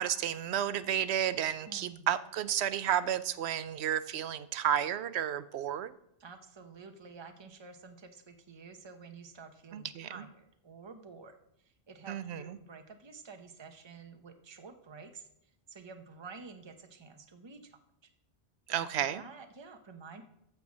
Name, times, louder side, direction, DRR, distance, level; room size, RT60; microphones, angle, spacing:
voice 1, 0.0-5.9 9.7-10.1 12.1-12.6 18.7-19.2, right 10 dB, 75° right, 14 dB, 0.9 m, -32 dB
voice 2, 1.7-2.1 6.2-11.4 11.6-15.3 15.7-17.8 18.7-20.2, right 4 dB, 25° right, 6 dB, 0.8 m, -50 dB
13.0 x 4.6 x 7.3 m, 0.78 s
omnidirectional pair, 1.1 m